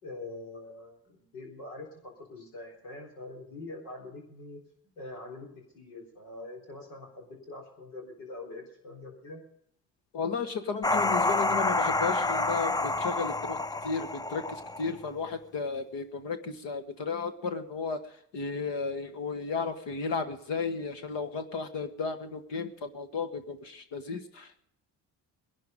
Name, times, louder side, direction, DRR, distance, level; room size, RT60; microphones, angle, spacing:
voice 1, 0.0-4.6 5.0-9.4 16.4-16.5, left 2 dB, 80° left, 0 dB, 4.2 m, -44 dB
voice 2, 10.1-18.0 18.3-24.6, left 5 dB, 60° left, 8 dB, 1.6 m, -34 dB
sound 1, 10.8-15.1, left 2 dB, 10° left, 0.5 m, -28 dB
20.5 x 11.5 x 5.2 m, 0.71 s
hypercardioid pair, 50°, 49 cm